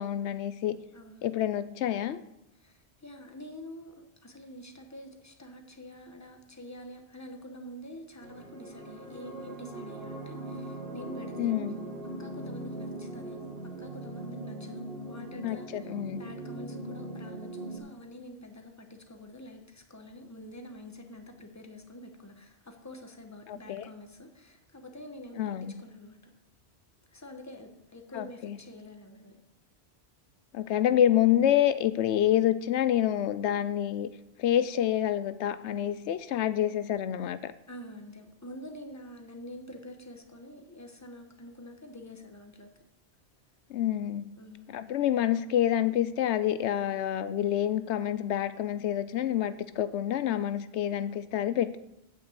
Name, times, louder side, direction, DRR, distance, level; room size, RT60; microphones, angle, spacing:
voice 1, 0.0-0.8 1.2-2.2 11.4-11.8 15.4-16.2 23.5-23.9 25.4-25.7 28.1-28.6 30.5-34.1 34.4-37.5 43.7-44.3 44.7-51.8, left 11 dB, 85° left, 13 dB, 0.9 m, -27 dB
voice 2, 0.9-1.2 2.6-11.6 12.2-26.3 27.1-29.4 37.7-42.7 44.4-44.7, left 1 dB, 15° left, 4 dB, 1.2 m, -47 dB
sound 1, 8.2-17.8, right 1 dB, 60° right, 2.2 m, -40 dB
8.4 x 6.6 x 8.0 m, 0.85 s
omnidirectional pair, 1.1 m